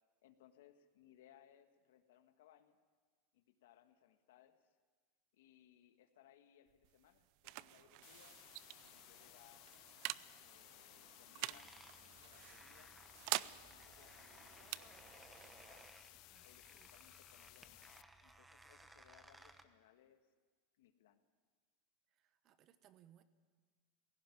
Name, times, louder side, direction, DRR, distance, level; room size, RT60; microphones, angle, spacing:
voice 1, 0.2-2.8 3.3-4.8 5.3-9.7 10.4-11.8 12.1-13.0 13.3-15.9 16.4-20.2 20.8-21.2, left 11 dB, 85° left, 8 dB, 1.5 m, -67 dB
sound 1, 6.7-18.0, right 19 dB, 55° right, 0.5 m, -48 dB
sound 2, 8.0-18.0, left 19 dB, 50° left, 0.5 m, -60 dB
sound 3, 11.5-19.6, right 2 dB, 5° right, 1.1 m, -62 dB
voice 2, 22.2-23.2, right 11 dB, 40° right, 12 dB, 1.2 m, -67 dB
17.0 x 16.0 x 10.0 m, 1.5 s
supercardioid pair, 140°, 0 cm